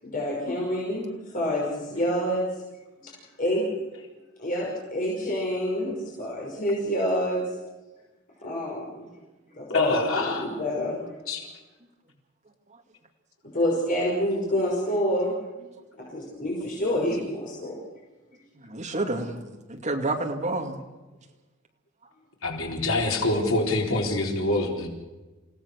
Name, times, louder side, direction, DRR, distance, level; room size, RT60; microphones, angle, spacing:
voice 1, 0.0-2.4 3.4-3.6 4.4-7.4 8.4-8.9 9.6-11.0 13.5-15.3 16.0-17.8, equal, 45° left, -3 dB, 5.6 m, -27 dB
voice 2, 9.7-10.4 11.3-11.4 22.4-24.9, left 2 dB, 80° left, 0 dB, 4.2 m, -25 dB
voice 3, 18.6-20.8, right 2 dB, 35° right, 3 dB, 2.4 m, -29 dB
28.5 x 17.0 x 6.5 m, 1.2 s
head